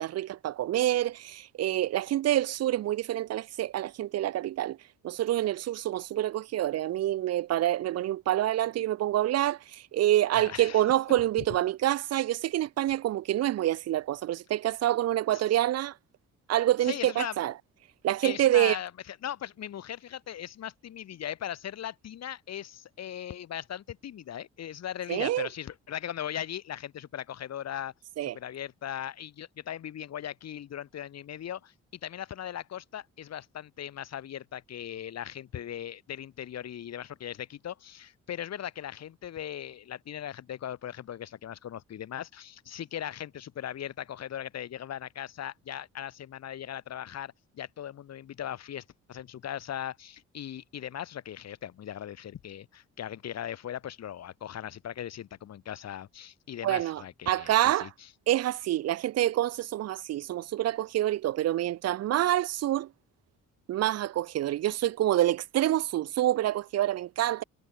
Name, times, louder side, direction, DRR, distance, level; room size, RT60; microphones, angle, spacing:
voice 1, 0.0-4.8 5.0-15.9 16.5-17.5 18.0-18.8 25.1-25.5 28.2-28.4 56.6-57.9 58.3-62.9 63.7-67.4, right 13 dB, 55° right, 0.5 m, -27 dB
voice 2, 10.3-10.8 15.3-15.4 16.8-17.4 18.2-27.9 28.2-31.7 32.0-57.9, left 10 dB, 60° left, 1.5 m, -39 dB
cardioid pair, 90°, 30 cm